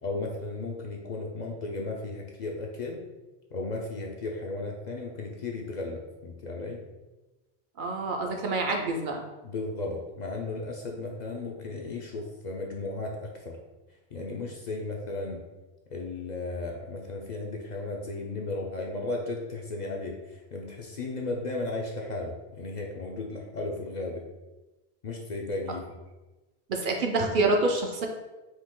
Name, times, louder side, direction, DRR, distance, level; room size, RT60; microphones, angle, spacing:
voice 1, 0.0-3.0 3.5-6.8 9.4-13.6 14.1-15.4 15.9-24.2 25.0-26.0, left 2 dB, 55° left, 0 dB, 0.5 m, -35 dB
voice 2, 7.8-9.2 26.7-28.1, right 2 dB, 60° right, 2 dB, 0.6 m, -27 dB
4.6 x 2.8 x 3.6 m, 1.1 s
omnidirectional pair, 1.1 m